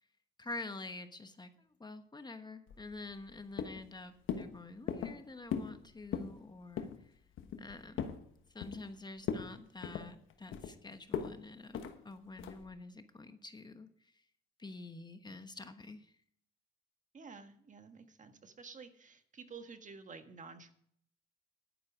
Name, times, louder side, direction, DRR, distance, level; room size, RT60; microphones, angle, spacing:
voice 1, 0.4-7.2 7.6-8.2 8.5-14.2 14.6-16.2, left 2 dB, 20° left, 9 dB, 1.1 m, -48 dB
sound 1, 2.7-3.3 3.6-3.9 4.3-4.5 4.9-5.2 5.5-5.8 6.0-6.4 6.8-7.0 7.4-8.2 8.6-8.9 9.2-9.5 9.8-10.7 11.1-11.3 11.7-11.9 12.4-12.7, left 8 dB, 80° left, 1.2 m, -38 dB
voice 2, 17.1-20.7, right 5 dB, 40° right, 7 dB, 1.5 m, -51 dB
11.0 x 9.5 x 5.0 m, 0.64 s
cardioid pair, 90°, 20 cm